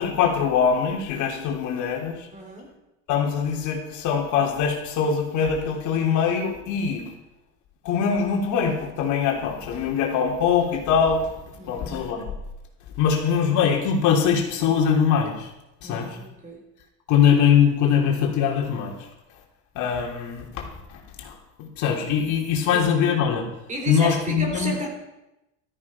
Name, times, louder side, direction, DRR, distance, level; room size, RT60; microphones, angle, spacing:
voice 1, 0.0-2.3 3.1-7.1 7.8-11.3 11.6-12.2 13.0-15.5 15.8-16.2 17.1-19.0 19.7-23.4 23.9-24.7, left 7 dB, 55° left, 1 dB, 3.3 m, -22 dB
voice 2, 2.3-2.7 11.6-12.2 15.8-16.6 22.7-22.9 23.7-24.9, right 1 dB, 20° right, 2 dB, 3.9 m, -33 dB
13.5 x 13.5 x 5.6 m, 0.92 s
cardioid pair, 135°, 36 cm